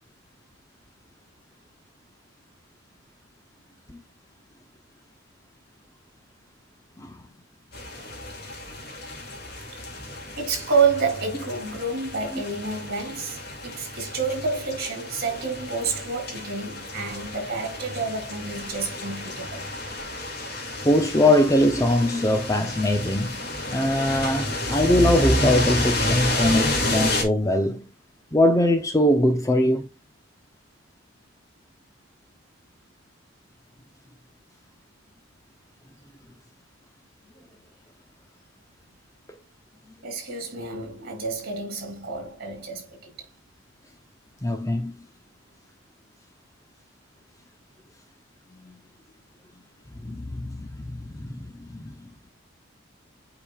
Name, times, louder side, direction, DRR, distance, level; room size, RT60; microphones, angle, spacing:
sound 1, 7.7-27.2, left 1 dB, 50° left, 2.3 m, -30 dB
voice 1, 10.4-19.7 40.0-43.1, right 4 dB, 45° right, 3.2 m, -29 dB
voice 2, 20.8-27.9 28.3-29.9 44.4-44.9 48.6-48.7 50.0-50.7 51.1-51.9, left 1 dB, 15° left, 0.6 m, -22 dB
8.7 x 5.0 x 2.4 m
head